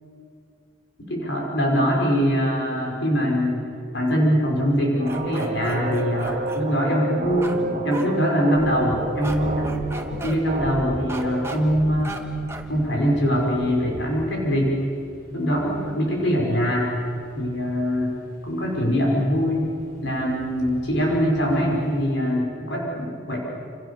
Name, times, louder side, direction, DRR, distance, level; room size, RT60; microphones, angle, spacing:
voice 1, 1.1-9.7 10.2-12.2 12.7-14.8 15.3-16.9 17.4-18.2 18.4-19.7 20.0-23.4, equal, 60° left, -2 dB, 5.6 m, -23 dB
sound 1, 5.0-11.6, right 2 dB, 35° right, 1.6 m, -30 dB
sound 2, 5.1-6.6 7.4-7.6 7.9-8.1 9.2-9.4 9.6-10.4 11.1-11.6 12.0-12.2 12.5-12.7, right 2 dB, 15° right, 1.7 m, -35 dB
sound 3, 8.5-22.1, left 1 dB, 45° left, 4.7 m, -40 dB
28.0 x 27.0 x 7.0 m, 2.5 s
head